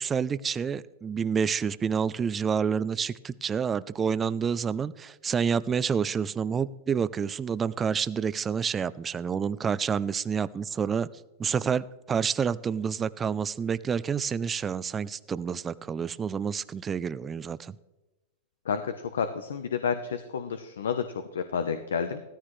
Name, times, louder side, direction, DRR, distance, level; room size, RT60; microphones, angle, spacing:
voice 1, 0.0-11.1 11.4-17.8, right 6 dB, 20° right, 17 dB, 0.4 m, -28 dB
voice 2, 18.6-22.2, left 6 dB, 90° left, 9 dB, 0.8 m, -30 dB
14.5 x 13.5 x 3.2 m, 1.1 s
hypercardioid pair, 125°, 0 cm